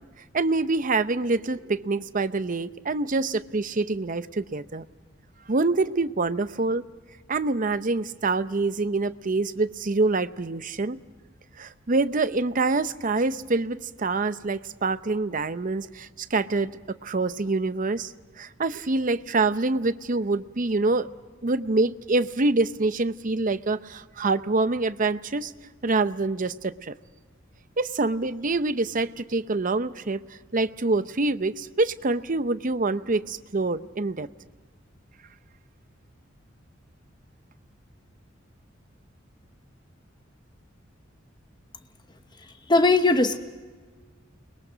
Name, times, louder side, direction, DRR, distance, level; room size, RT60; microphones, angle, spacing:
voice 1, 0.3-4.8 5.5-6.8 7.3-11.0 11.6-16.8 17.0-18.1 18.4-21.1 21.4-25.5 25.8-26.9 27.8-30.2 30.5-34.3, right 3 dB, 40° right, 12 dB, 0.7 m, -26 dB
voice 2, 42.7-43.4, left 2 dB, 20° left, 8 dB, 1.0 m, -19 dB
29.5 x 21.5 x 5.1 m, 1.4 s
head